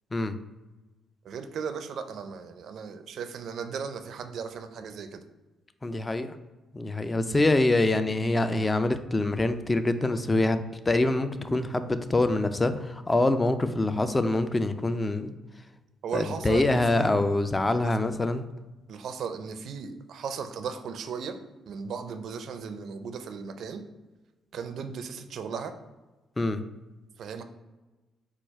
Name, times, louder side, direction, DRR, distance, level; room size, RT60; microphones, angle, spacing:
voice 1, 1.2-5.2 16.0-17.2 17.8-17.9 18.9-21.4 21.7-23.8 24.5-25.7 27.2-27.4, right 6 dB, 65° right, 8 dB, 0.4 m, -36 dB
voice 2, 5.8-6.3 6.7-10.6 10.9-15.3 16.1-18.4 26.4-26.6, left 2 dB, 20° left, 10 dB, 0.3 m, -25 dB
4.6 x 2.3 x 4.5 m, 1.2 s
cardioid pair, 90°, 0 cm